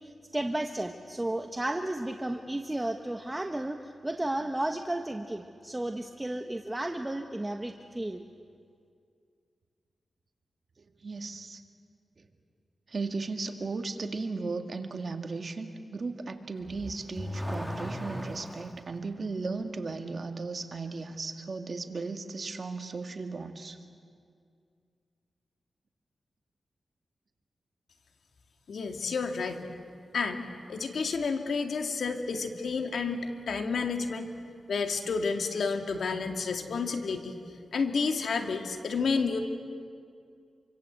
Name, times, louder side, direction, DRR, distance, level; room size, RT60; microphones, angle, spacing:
voice 1, 0.0-8.2, right 1 dB, 15° right, 5 dB, 1.2 m, -33 dB
voice 2, 10.8-11.6 12.2-12.3 12.9-23.8, right 3 dB, 50° right, 5 dB, 2.2 m, -36 dB
Car / Accelerating revving vroom, 16.6-18.9, equal, ahead, 1.9 m, -37 dB
voice 3, 28.7-29.7 30.1-34.3 34.7-37.3 37.7-39.4, left 4 dB, 75° left, 5 dB, 2.2 m, -30 dB
27.0 x 24.5 x 8.3 m, 2.3 s
cardioid pair, 75°, 0 cm